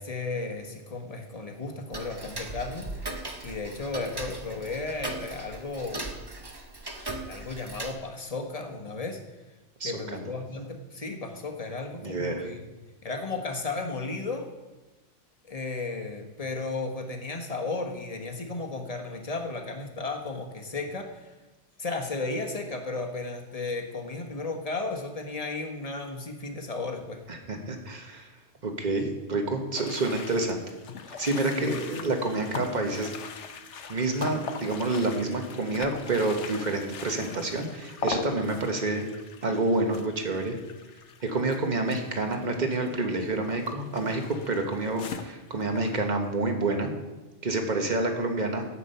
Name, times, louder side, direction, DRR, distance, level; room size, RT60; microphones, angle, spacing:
voice 1, 0.0-3.1 3.4-6.1 7.3-9.2 9.8-12.6 13.0-14.5 15.5-21.3 21.8-27.2 31.5-32.1, left 3 dB, 30° left, 4 dB, 1.2 m, -34 dB
Tick-tock, 1.9-7.9, right 2 dB, 20° right, 1.0 m, -38 dB
voice 2, 9.8-10.3 12.0-12.5 27.3-28.3 28.6-30.6 31.2-33.1 33.9-39.0 39.4-40.6 41.2-46.9 47.4-48.6, right 2 dB, 40° right, 4 dB, 1.4 m, -28 dB
sound 1, 29.7-46.1, left 5 dB, 70° left, 1.1 m, -41 dB
11.5 x 8.4 x 5.6 m, 1.1 s
omnidirectional pair, 1.3 m